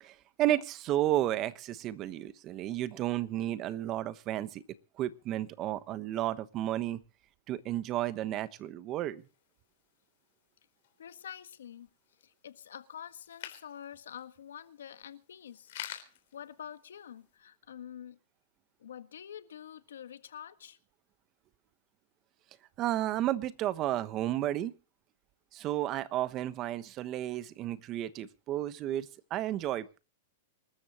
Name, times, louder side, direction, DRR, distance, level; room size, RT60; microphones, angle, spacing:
voice 1, 0.0-4.6 5.0-7.0 7.5-9.2 22.8-24.7 25.5-30.0, right 13 dB, 35° right, 14 dB, 1.1 m, -32 dB
sound 1, 9.2-17.3, left 12 dB, 65° left, 3.7 m, -51 dB
voice 2, 11.0-11.9 12.2-15.7 16.3-18.2 18.8-20.8, left 9 dB, 85° left, 10 dB, 1.5 m, -47 dB
26.5 x 13.5 x 3.0 m, 0.34 s
hypercardioid pair, 135°, 0 cm